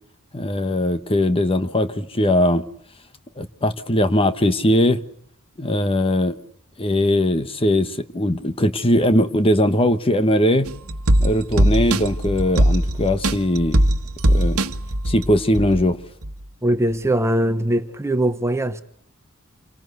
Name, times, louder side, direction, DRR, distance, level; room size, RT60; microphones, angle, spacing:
voice 1, 0.3-2.6 3.4-5.0 5.6-6.4 6.8-10.7 11.2-13.8 14.3-14.6 15.1-16.0, left 1 dB, 25° left, 1.2 m, -20 dB
sound 1, 10.7-15.8 16.2-16.3, right 1 dB, 80° right, 1.4 m, -20 dB
voice 2, 16.6-18.8, right 1 dB, 15° right, 1.1 m, -21 dB
27.5 x 19.5 x 8.1 m
head